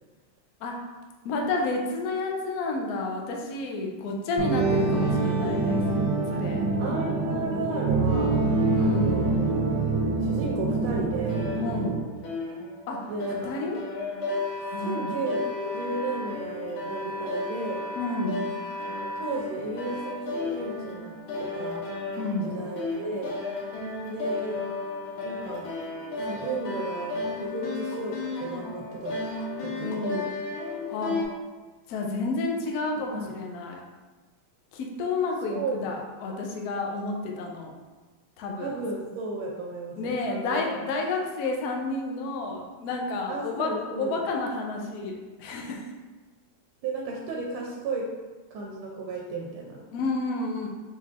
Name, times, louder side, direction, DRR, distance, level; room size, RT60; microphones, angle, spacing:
voice 1, 1.2-5.8 6.3-6.7 8.7-9.2 11.6-12.0 12.9-13.1 13.4-13.8 14.7-15.1 18.0-18.4 22.2-22.5 29.8-30.3 30.9-31.2 31.9-33.8 34.7-37.7 38.4-38.7 40.0-45.9 49.9-50.7, left 3 dB, 70° left, 0 dB, 0.9 m, -30 dB
sound 1, 4.4-12.0, right 3 dB, 70° right, 1.3 m, -25 dB
voice 2, 6.8-8.4 8.8-9.5 10.2-11.5 13.1-13.5 14.8-17.8 18.9-21.1 21.4-21.8 22.4-23.3 24.0-24.6 25.2-25.7 26.3-29.1 29.6-30.0 33.0-33.3 35.5-35.9 38.6-40.6 43.3-44.2 46.8-48.1 48.5-49.8, right 3 dB, 90° right, -1 dB, 1.4 m, -34 dB
sound 2, 11.3-31.2, left 3 dB, 85° left, 1.6 m, -33 dB
4.3 x 3.7 x 2.4 m, 1.3 s
omnidirectional pair, 2.2 m